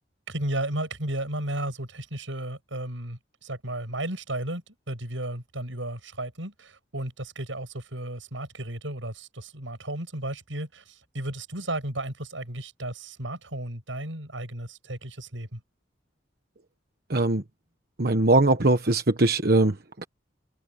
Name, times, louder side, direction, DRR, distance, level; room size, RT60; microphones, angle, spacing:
voice 1, 0.3-10.8 11.1-15.6, right 1 dB, 85° right, 7.9 m, -34 dB
voice 2, 17.1-17.4 18.0-20.1, right 2 dB, 50° right, 1.2 m, -21 dB
open air
head